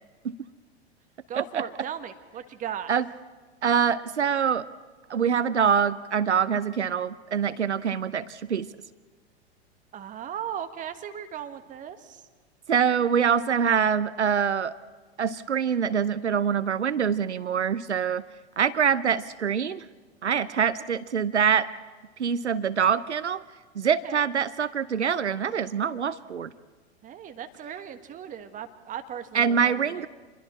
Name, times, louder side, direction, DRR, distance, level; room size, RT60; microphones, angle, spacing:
voice 1, 1.3-2.9 9.9-12.2 20.5-20.8 23.8-24.3 27.0-30.1, right 9 dB, 25° right, 8 dB, 1.4 m, -37 dB
voice 2, 3.6-4.6 5.1-8.7 12.7-14.8 15.2-18.2 18.6-19.8 20.2-21.7 22.2-23.4 23.8-26.5 29.3-30.1, right 7 dB, 85° right, 16 dB, 0.7 m, -24 dB
27.5 x 22.0 x 4.3 m, 1.4 s
figure-of-eight pair, 100°, 33 cm